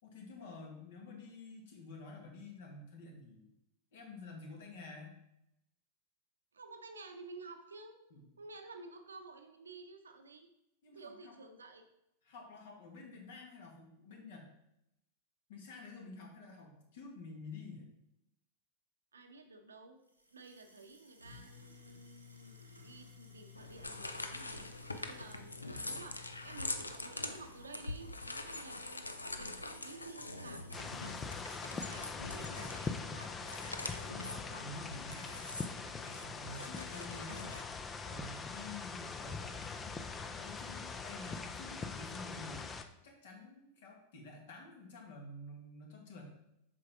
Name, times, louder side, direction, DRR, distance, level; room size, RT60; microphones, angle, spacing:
voice 1, 0.0-3.5 3.9-5.2 8.1-8.2 10.8-11.3 12.3-14.5 15.5-17.9 30.2-30.3 34.3-35.6 36.0-42.7 43.0-46.3, left 3 dB, 55° left, 1 dB, 1.9 m, -50 dB
voice 2, 6.5-8.0 8.4-10.5 10.9-11.8 19.1-20.0 20.3-31.2 31.7-34.4, right 3 dB, 70° right, 6 dB, 0.8 m, -53 dB
sound 1, 20.1-32.1, left 5 dB, 90° right, 1.2 m, -58 dB
sound 2, 23.5-37.6, left 2 dB, 80° left, 0.6 m, -44 dB
sound 3, 30.7-42.8, left 4 dB, 20° left, 0.6 m, -42 dB
7.7 x 5.7 x 3.6 m, 0.82 s
figure-of-eight pair, 90°, 0 cm